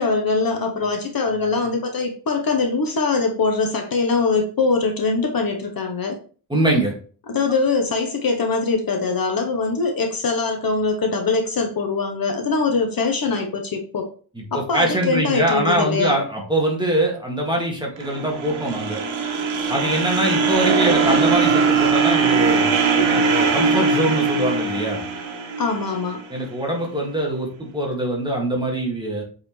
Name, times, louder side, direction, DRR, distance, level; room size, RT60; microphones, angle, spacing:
voice 1, 0.0-6.2 7.3-14.1 14.5-16.2 25.6-26.2, left 4 dB, 50° left, 4 dB, 1.0 m, -22 dB
voice 2, 6.5-6.9 14.4-19.0 19.7-25.0 26.3-29.2, right 1 dB, 10° right, -1 dB, 1.9 m, -23 dB
sound 1, 18.0-26.2, right 5 dB, 80° right, 1.4 m, -20 dB
7.7 x 4.1 x 3.1 m, 0.41 s
wide cardioid pair, 145°, 47 cm